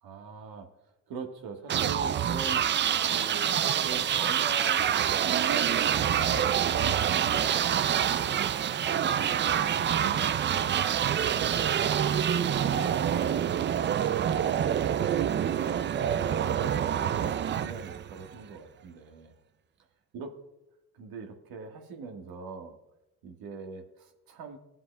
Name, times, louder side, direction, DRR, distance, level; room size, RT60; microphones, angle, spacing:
voice 1, 0.0-0.7 1.1-2.6 3.1-7.0 7.6-11.5 11.8-13.7 14.2-15.0 15.8-19.4 20.1-20.3 20.9-22.8 23.2-24.6, right 4 dB, 70° right, 3 dB, 1.5 m, -42 dB
sound 1, 1.7-18.4, right 9 dB, 30° right, 0.4 m, -26 dB
16.0 x 7.5 x 2.2 m, 0.96 s
supercardioid pair, 70°, 37 cm